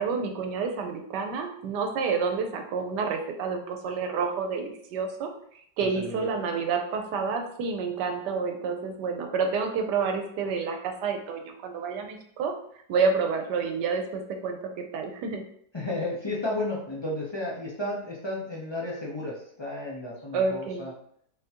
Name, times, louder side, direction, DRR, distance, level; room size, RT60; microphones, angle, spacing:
voice 1, 0.0-5.3 5.8-12.5 12.9-15.4 20.3-20.8, right 5 dB, 80° right, 4 dB, 1.2 m, -29 dB
voice 2, 5.8-6.3 15.7-20.9, left 2 dB, 40° left, -5 dB, 0.3 m, -33 dB
3.7 x 3.5 x 2.9 m, 0.65 s
omnidirectional pair, 1.9 m